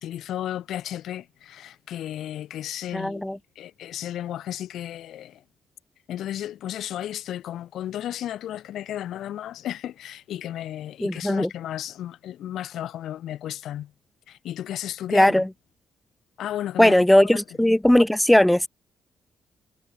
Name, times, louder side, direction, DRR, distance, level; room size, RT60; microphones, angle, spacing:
voice 1, 0.0-3.2 3.5-5.4 6.1-13.9 14.3-15.5 16.4-17.0 17.3-17.4, left 12 dB, 80° left, 2.7 m, -33 dB
voice 2, 2.9-3.4 11.0-11.5 15.1-15.4 16.8-18.7, left 1 dB, 5° left, 1.3 m, -18 dB
cardioid pair, 90°, 0 cm